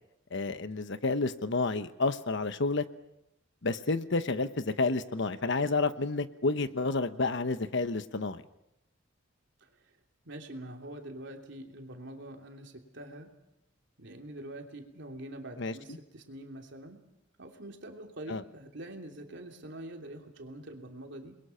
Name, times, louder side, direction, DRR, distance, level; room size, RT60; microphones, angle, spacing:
voice 1, 0.3-2.8 3.6-8.4 15.6-15.7 18.3-18.4, left 3 dB, 65° left, 11 dB, 1.1 m, -30 dB
voice 2, 10.2-13.3 14.0-17.0 17.4-21.4, right 1 dB, 65° right, 3 dB, 3.0 m, -45 dB
29.0 x 22.0 x 5.8 m, 0.83 s
head